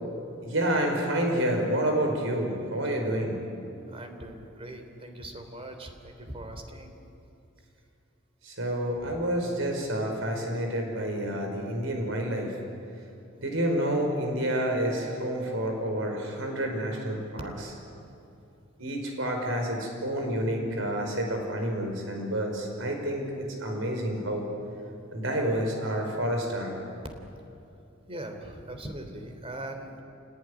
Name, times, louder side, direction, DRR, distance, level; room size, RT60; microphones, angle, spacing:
voice 1, 0.4-3.4 8.4-12.6 13.4-17.7 18.8-24.5 25.1-26.8, right 1 dB, 75° right, 2 dB, 5.4 m, -29 dB
voice 2, 3.9-6.9 9.0-9.2 13.4-13.6 28.1-30.0, right 1 dB, 30° right, 6 dB, 3.2 m, -41 dB
29.0 x 18.5 x 10.0 m, 2.7 s
head